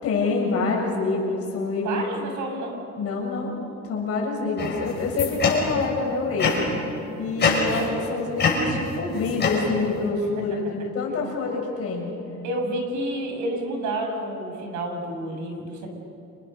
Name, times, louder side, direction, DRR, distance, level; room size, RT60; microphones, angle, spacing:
voice 1, 0.0-2.0 3.0-3.6 3.9-6.5 7.2-12.1, left 4 dB, 55° left, -1 dB, 7.0 m, -26 dB
voice 2, 1.8-2.8 10.2-10.3 12.4-15.9, right 1 dB, 90° right, 3 dB, 6.4 m, -29 dB
sound 1, 4.6-5.9 6.4-6.9 7.4-8.1 8.4-10.1, left 3 dB, 35° left, 6.2 m, -25 dB
29.5 x 28.0 x 6.6 m, 2.7 s
cardioid pair, 175°, 29 cm